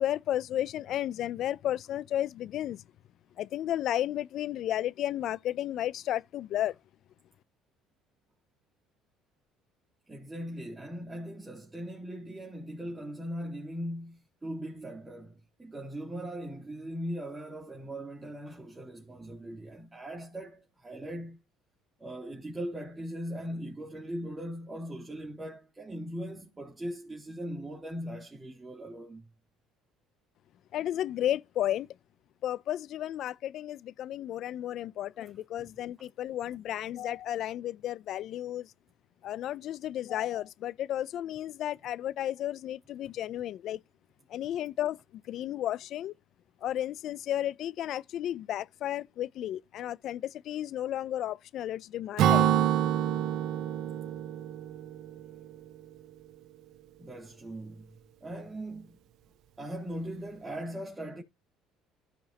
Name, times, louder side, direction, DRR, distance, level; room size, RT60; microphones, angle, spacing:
voice 1, 0.0-2.8 3.4-6.7 30.7-31.9 32.4-38.7 39.2-43.8 44.3-46.1 46.6-52.5, left 12 dB, 60° left, 0.5 m, -33 dB
voice 2, 10.1-21.4 22.0-29.3 35.2-35.3 35.6-35.7 36.0-36.1 57.0-59.0 59.6-61.2, equal, 15° right, 3.1 m, -40 dB
Acoustic guitar / Strum, 52.2-55.8, right 11 dB, 70° right, 0.7 m, -27 dB
15.0 x 5.3 x 2.9 m
supercardioid pair, 100°, 0 cm